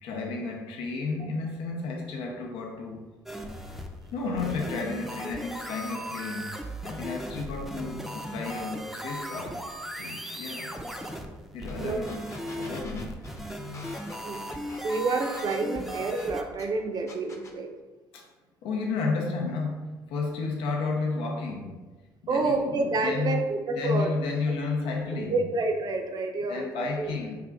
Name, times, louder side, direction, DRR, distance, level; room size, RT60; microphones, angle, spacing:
voice 1, 0.0-3.0 4.1-6.5 6.8-9.6 9.9-10.7 11.5-12.3 12.5-13.1 18.1-18.3 18.6-21.9 22.3-23.4 23.7-25.4 26.5-27.3, left 4 dB, 75° left, 0 dB, 0.6 m, -32 dB
sound 1, 3.3-16.4, equal, ahead, 0.5 m, -37 dB
sound 2, 11.7-11.8 12.0-16.7 17.1-17.6, left 3 dB, 30° left, 0.8 m, -46 dB
voice 2, 14.7-17.7 22.3-24.1 24.5-24.6 25.3-27.2, right 3 dB, 45° right, 4 dB, 0.6 m, -29 dB
4.2 x 2.4 x 3.4 m, 1.2 s
hypercardioid pair, 60°, 9 cm